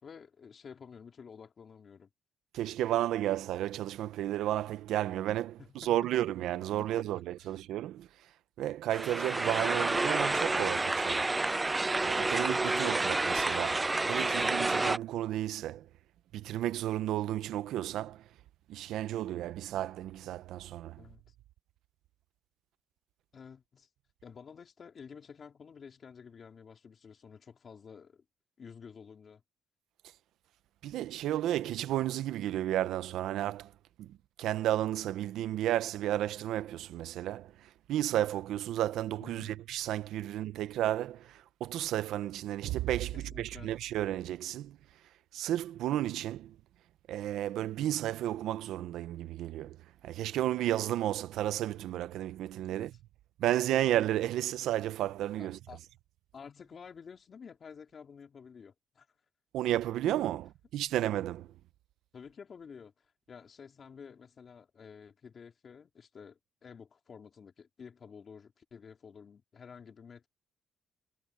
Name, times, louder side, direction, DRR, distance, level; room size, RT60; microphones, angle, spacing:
voice 1, 0.0-2.1 5.6-5.9 7.4-7.6 21.0-21.3 23.3-23.9 24.2-28.2 28.6-29.4 39.2-39.6 43.1-43.8 52.7-52.9 55.4-55.8 56.3-59.1 60.3-60.4 62.1-70.3, left 6 dB, 45° left, 2.8 m, -51 dB
voice 2, 2.5-8.1 8.6-11.3 12.1-15.8 16.3-18.2 18.7-21.0 30.8-33.7 34.0-34.1 34.4-37.5 37.9-44.8 45.3-46.5 47.1-49.8 50.0-52.9 53.4-55.6 59.5-61.5, right 13 dB, 85° right, 0.6 m, -32 dB
sound 1, 8.9-15.0, right 2 dB, 20° right, 0.4 m, -29 dB
cardioid pair, 90°, 0 cm